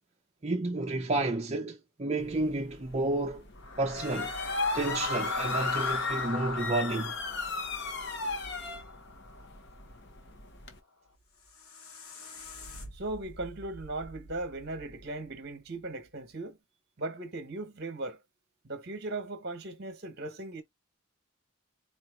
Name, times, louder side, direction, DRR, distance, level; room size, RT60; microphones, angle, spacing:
voice 1, 0.4-3.4 3.8-4.3 4.7-7.2 12.2-12.4, right 2 dB, 30° right, 0.5 m, -31 dB
sound 1, 2.2-10.8, left 3 dB, 50° left, 0.9 m, -37 dB
sound 2, 3.6-9.7, left 3 dB, 70° left, 1.3 m, -36 dB
sound 3, 11.1-16.2, left 2 dB, 90° left, 1.4 m, -48 dB
voice 2, 12.9-16.6 17.0-18.2 18.6-20.6, right 2 dB, 50° right, 1.1 m, -38 dB
4.4 x 2.5 x 3.7 m
head